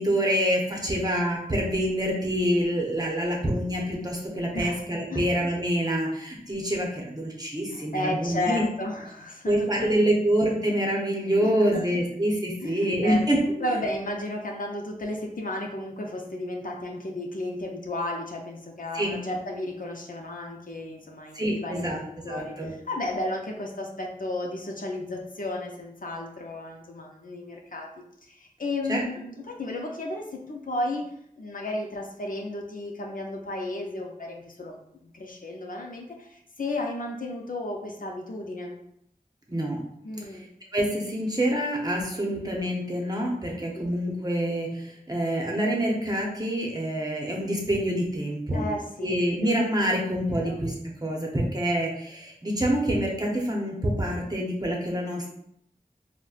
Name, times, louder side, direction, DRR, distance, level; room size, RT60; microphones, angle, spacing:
voice 1, 0.0-8.6 9.5-13.4 18.9-19.2 21.3-22.7 28.9-29.0 39.5-39.8 40.3-40.5 40.7-48.7 49.0-50.7 51.0-55.3, equal, 25° right, -2 dB, 0.8 m, -26 dB
voice 2, 7.7-10.2 11.3-11.8 12.6-13.2 13.6-27.9 28.3-31.1 31.4-38.8 40.0-40.4 48.5-49.1 50.2-50.6, left 1 dB, 65° left, 1 dB, 0.5 m, -33 dB
4.0 x 2.1 x 2.4 m, 0.72 s
wide cardioid pair, 45°, 15 cm